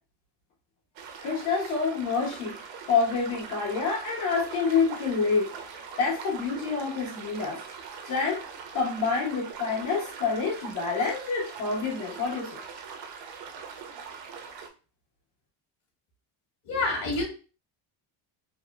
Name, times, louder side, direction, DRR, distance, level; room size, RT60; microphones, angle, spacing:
sound 1, 1.0-14.7, right 6 dB, 70° right, 0.7 m, -42 dB
voice 1, 1.2-5.5 6.0-7.6 8.0-8.4 8.7-12.6, left 5 dB, 85° left, -3 dB, 1.5 m, -27 dB
voice 2, 16.6-17.2, left 2 dB, 65° left, -2 dB, 1.4 m, -27 dB
3.5 x 2.3 x 2.4 m, 0.36 s
cardioid pair, 135°, 46 cm